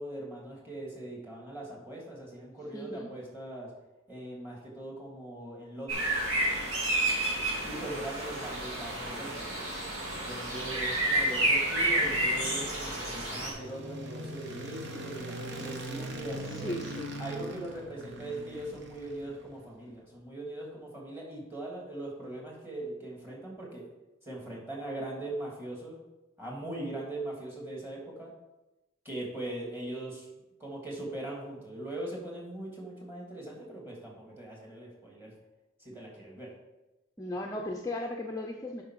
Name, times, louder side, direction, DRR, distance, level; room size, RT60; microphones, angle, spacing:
voice 1, 0.0-3.7 4.1-6.1 7.6-9.5 10.3-16.7 17.2-23.9 24.2-26.0 26.4-28.3 29.0-30.3 30.6-35.3 35.8-36.5, right 1 dB, 10° right, -3 dB, 2.6 m, -40 dB
voice 2, 2.7-3.1 16.4-17.2 37.2-38.8, left 1 dB, 15° left, 1 dB, 0.6 m, -36 dB
sound 1, 5.9-13.5, right 1 dB, 85° right, 2.9 m, -30 dB
sound 2, 11.4-19.6, right 1 dB, 60° right, 1.1 m, -42 dB
8.8 x 5.8 x 4.8 m, 1.0 s
head